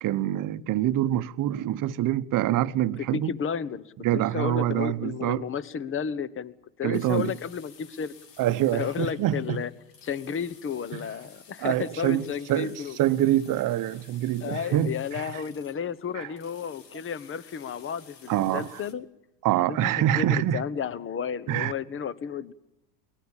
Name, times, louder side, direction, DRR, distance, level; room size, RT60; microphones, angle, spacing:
voice 1, 0.0-3.3 4.0-5.4 6.8-7.3 8.4-9.6 10.9-11.0 11.6-15.4 16.1-16.3 18.3-18.8 19.4-20.6 21.5-21.7, right 13 dB, 40° right, 1.0 m, -26 dB
voice 2, 3.0-8.1 8.7-9.7 10.0-13.0 14.4-19.1 19.7-22.5, left 7 dB, 25° left, 1.2 m, -32 dB
sound 1, 6.9-18.9, left 6 dB, 90° left, 2.5 m, -54 dB
23.0 x 20.0 x 7.2 m
hypercardioid pair, 100°, 47 cm